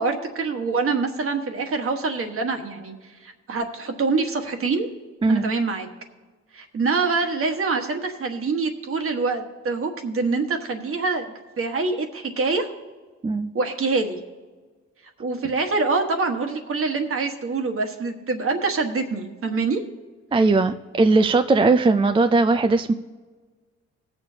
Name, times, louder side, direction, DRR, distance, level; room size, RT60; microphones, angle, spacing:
voice 1, 0.0-2.9 3.2-4.9 5.3-5.9 6.5-11.3 11.6-12.7 13.5-14.2 15.2-19.8, right 4 dB, 45° right, 4 dB, 1.4 m, -25 dB
voice 2, 20.3-22.9, right 3 dB, 20° right, 8 dB, 0.3 m, -19 dB
19.0 x 7.0 x 2.8 m, 1.4 s
cardioid pair, 90°, 30 cm